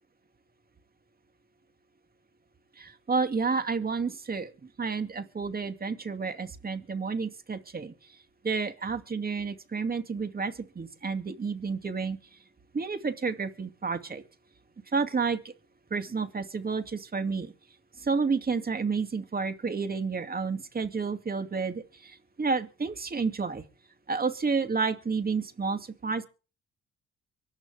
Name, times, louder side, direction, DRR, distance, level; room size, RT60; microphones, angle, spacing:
voice 1, 2.8-7.9 8.4-12.2 12.7-14.2 14.9-15.5 15.9-17.5 18.0-23.6 24.1-26.2, right 4 dB, 30° right, 8 dB, 2.5 m, -30 dB
24.5 x 12.0 x 3.5 m, 0.35 s
cardioid pair, 90°, 30 cm